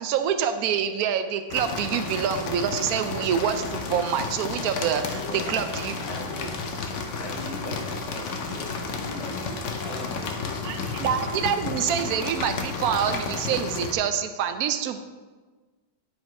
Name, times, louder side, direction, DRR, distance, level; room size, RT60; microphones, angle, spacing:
voice 1, 0.0-6.0 10.6-15.0, right 8 dB, 75° right, 9 dB, 0.8 m, -26 dB
sound 1, 1.5-13.9, left 4 dB, 60° left, 0.8 m, -32 dB
voice 2, 5.1-5.7 6.0-6.5 7.1-11.0, equal, 20° right, -6 dB, 1.0 m, -40 dB
9.4 x 5.1 x 4.6 m, 1.3 s
omnidirectional pair, 2.1 m